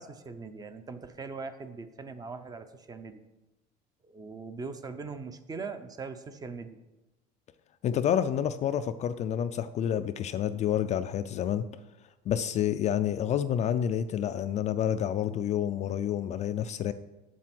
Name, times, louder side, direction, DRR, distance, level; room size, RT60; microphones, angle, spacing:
voice 1, 0.0-3.2 4.1-6.8, right 4 dB, 20° right, 10 dB, 0.6 m, -41 dB
voice 2, 7.8-11.7 12.3-16.9, left 9 dB, 35° left, 11 dB, 0.4 m, -29 dB
7.8 x 7.5 x 5.9 m, 1.0 s
cardioid pair, 150°, 19 cm